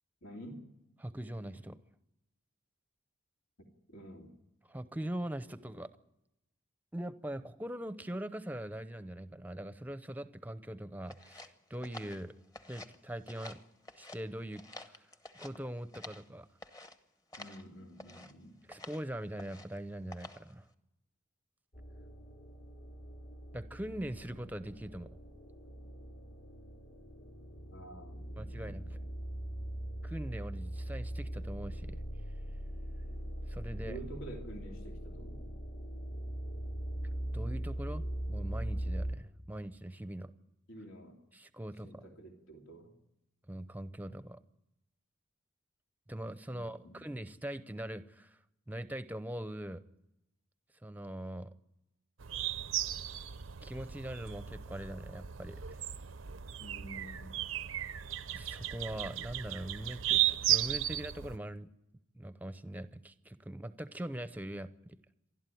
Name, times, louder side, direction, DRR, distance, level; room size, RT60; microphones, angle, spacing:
voice 1, 0.2-0.7 3.6-4.3 17.4-18.6 27.7-29.0 33.7-35.5 40.7-41.2 41.8-42.9 46.5-47.0 56.6-57.4, right 1 dB, 80° left, 2 dB, 2.9 m, -49 dB
voice 2, 1.0-1.8 4.7-5.9 6.9-12.3 12.7-13.6 14.0-15.0 15.3-16.5 18.7-20.7 23.5-25.1 28.4-29.0 30.0-32.0 33.5-34.0 37.3-40.3 41.3-42.1 43.5-44.4 46.1-48.4 48.7-49.8 50.8-51.5 53.6-55.8 58.3-61.7 62.1-65.0, right 1 dB, 10° right, 12 dB, 0.7 m, -42 dB
sound 1, 11.1-13.0 13.2-14.2 14.5-16.3 16.6-17.0 17.3-17.6 18.0-18.3 18.7-19.0 19.4-19.8 20.1-20.5, left 1 dB, 20° left, 1.0 m, -50 dB
sound 2, 21.7-39.2, right 1 dB, 55° left, 2.6 m, -41 dB
sound 3, 52.2-61.4, right 12 dB, 75° right, 0.7 m, -35 dB
28.5 x 12.0 x 9.3 m, 0.90 s
head